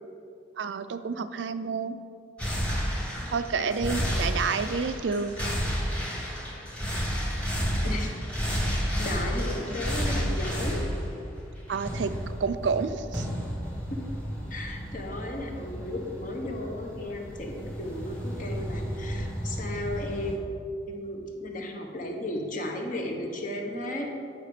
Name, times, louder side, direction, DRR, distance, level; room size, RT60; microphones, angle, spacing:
voice 1, 0.6-2.0 3.3-5.4 11.7-12.1 12.4-13.3, right 5 dB, 80° right, 12 dB, 0.4 m, -29 dB
sound 1, 2.4-20.3, equal, 5° left, 1.3 m, -32 dB
voice 2, 9.0-10.8 13.9-14.0 14.5-20.4 20.9-24.1, left 1 dB, 50° left, 1 dB, 1.2 m, -34 dB
9.2 x 5.8 x 5.0 m, 2.5 s
head